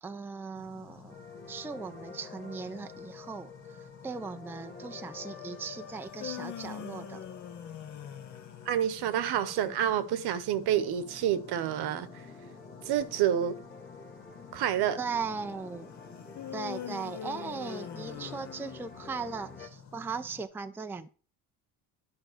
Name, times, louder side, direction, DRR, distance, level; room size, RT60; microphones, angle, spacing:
voice 1, 0.0-1.2 1.5-7.3 15.0-15.9 16.5-21.1, right 5 dB, 5° right, 0.5 m, -38 dB
sound 1, 0.5-20.4, left 7 dB, 65° left, 2.3 m, -53 dB
sound 2, 1.1-19.7, left 5 dB, 25° left, 1.8 m, -49 dB
Male yawning, 5.9-9.2 16.3-19.3, left 9 dB, 45° left, 1.0 m, -43 dB
voice 2, 8.7-12.2 12.8-13.6 14.5-15.0, right 10 dB, 65° right, 1.1 m, -28 dB
11.0 x 3.8 x 6.6 m
supercardioid pair, 95°, 41 cm